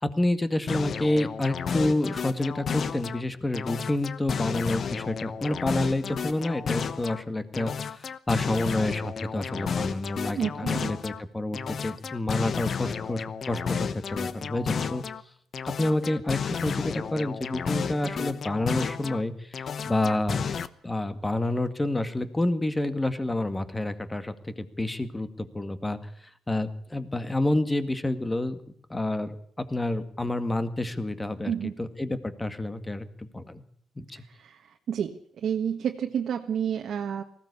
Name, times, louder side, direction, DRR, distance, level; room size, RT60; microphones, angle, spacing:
voice 1, 0.0-15.0 15.6-20.5 20.8-28.6 28.9-31.5 31.8-33.6 34.0-34.2, left 1 dB, 15° left, 10 dB, 1.9 m, -29 dB
sound 1, 0.7-3.2 3.5-7.2 7.5-11.2 11.5-15.2 15.5-19.2 19.5-20.7, left 6 dB, 50° left, 1.0 m, -32 dB
voice 2, 10.4-10.9 31.5-31.8 34.3-34.6 34.9-37.2, right 8 dB, 65° right, 3 dB, 1.5 m, -30 dB
19.5 x 16.0 x 8.3 m, 0.64 s
cardioid pair, 90°, 0 cm